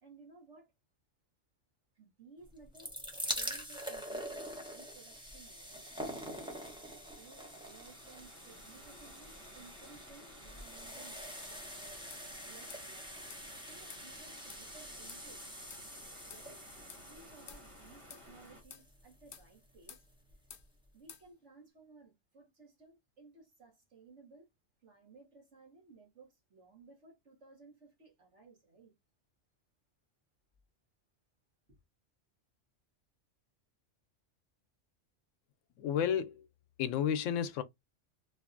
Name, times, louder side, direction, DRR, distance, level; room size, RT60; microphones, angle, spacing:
voice 1, 0.0-0.7 2.0-5.9 6.8-13.3 13.7-15.4 16.3-20.0 20.9-24.5 24.8-28.9 31.7-31.8, right 4 dB, 70° right, 1.9 m, -59 dB
sound 1, 2.5-19.5 20.3-20.4 20.6-20.7, equal, 5° right, 0.6 m, -45 dB
sound 2, 7.1-18.6, equal, 25° right, 1.5 m, -56 dB
sound 3, 12.1-12.3 12.7-12.9 13.3-13.4 13.9-14.1 14.5-14.7 15.1-15.2 15.7-15.9 16.3-16.5 16.9-17.0 17.5-17.6 18.1-18.3 18.7-18.9 19.3-19.5 19.9-20.1 20.5-20.7 21.1-21.3, left 8 dB, 55° left, 0.7 m, -52 dB
voice 2, 35.8-36.5 36.8-37.6, left 8 dB, 85° left, 0.9 m, -31 dB
3.9 x 2.6 x 2.5 m
omnidirectional pair, 1.3 m